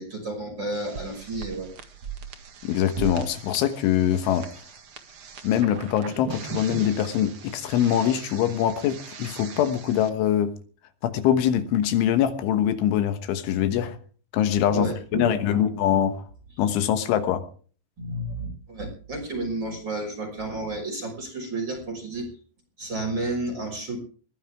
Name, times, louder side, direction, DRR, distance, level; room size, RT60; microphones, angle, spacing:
voice 1, 0.0-1.7 14.7-15.7 18.0-22.3 22.8-24.0, right 2 dB, 25° right, 2 dB, 6.2 m, -31 dB
sound 1, 0.7-10.1, right 6 dB, 90° right, 1.2 m, -40 dB
voice 2, 2.6-4.5 5.4-10.5 11.0-14.0 14.3-16.2 16.6-17.4, left 10 dB, 80° left, 9 dB, 3.7 m, -23 dB
21.0 x 15.5 x 3.5 m, 0.42 s
omnidirectional pair, 5.5 m